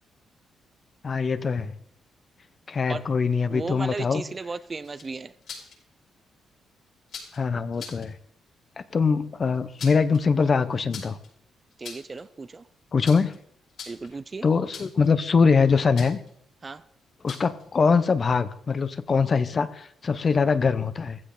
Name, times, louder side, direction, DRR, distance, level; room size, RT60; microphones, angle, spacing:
voice 1, 1.0-1.7 2.7-4.2 7.3-8.2 8.8-11.2 12.9-13.3 14.4-16.2 17.2-21.2, left 5 dB, 35° left, 0.9 m, -23 dB
voice 2, 3.5-5.3 11.8-12.7 13.9-14.5 16.6-16.8, right 4 dB, 25° right, 0.5 m, -35 dB
sound 1, 4.8-5.8 7.1-7.4 7.7-8.1 9.5-10.2 10.9-11.3 11.7-12.2 13.0-13.4 13.7-14.2 14.7-15.1 16.0-16.3 17.3-17.6, left 6 dB, 60° left, 6.0 m, -41 dB
16.0 x 15.0 x 3.9 m
cardioid pair, 145°, 0 cm